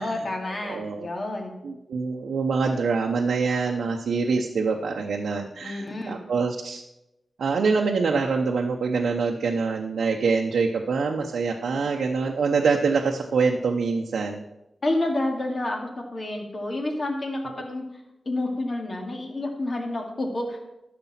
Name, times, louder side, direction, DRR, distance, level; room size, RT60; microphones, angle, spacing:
voice 1, 0.0-1.6 5.6-6.2 14.8-17.8 18.3-20.6, left 2 dB, 50° left, 2 dB, 2.3 m, -29 dB
voice 2, 0.6-1.1 1.6-6.8 7.4-14.4, right 4 dB, 90° right, 1 dB, 0.8 m, -25 dB
11.0 x 6.8 x 5.8 m, 0.93 s
cardioid pair, 65°, 0 cm